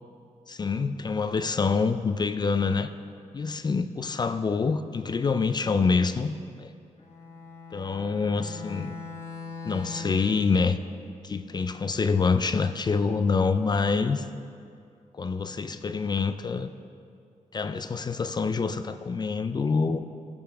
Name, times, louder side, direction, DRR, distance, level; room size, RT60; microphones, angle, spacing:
voice 1, 0.5-2.9 3.3-6.7 7.7-9.0 9.6-10.8 11.2-14.3 15.1-16.7 17.5-20.1, left 4 dB, 35° left, 10 dB, 0.4 m, -26 dB
Bowed string instrument, 7.0-10.4, left 3 dB, 60° left, 1.5 m, -40 dB
17.5 x 6.8 x 3.4 m, 2.4 s
cardioid pair, 100°, 13 cm